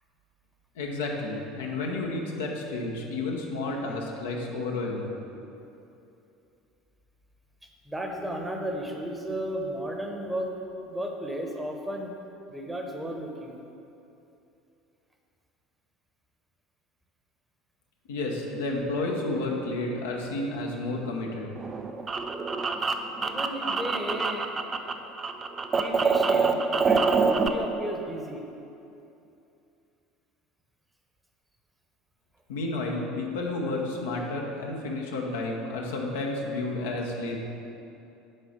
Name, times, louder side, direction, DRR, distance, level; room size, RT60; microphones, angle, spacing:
voice 1, 0.8-5.2 18.1-21.5 32.5-37.4, left 2 dB, 70° left, 0 dB, 0.9 m, -31 dB
voice 2, 7.9-10.5 10.8-12.1 12.5-13.6 23.2-24.5 25.7-28.4, right 1 dB, 10° right, 2 dB, 1.0 m, -34 dB
sound 1, 21.6-24.9 25.2-27.5, right 4 dB, 30° right, 0.5 m, -25 dB
6.6 x 4.9 x 5.9 m, 2.8 s
figure-of-eight pair, 65°, 0 cm